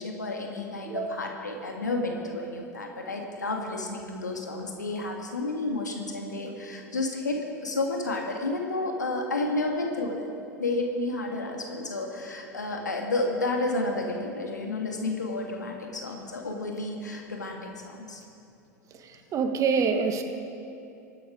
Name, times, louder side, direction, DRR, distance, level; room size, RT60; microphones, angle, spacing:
voice 1, 0.0-10.3 10.6-18.2, left 2 dB, 85° left, 1 dB, 2.0 m, -31 dB
voice 2, 0.8-1.2 19.0-20.2, right 5 dB, 35° right, 6 dB, 1.5 m, -27 dB
24.5 x 9.2 x 5.0 m, 2.8 s
figure-of-eight pair, 85°, 9 cm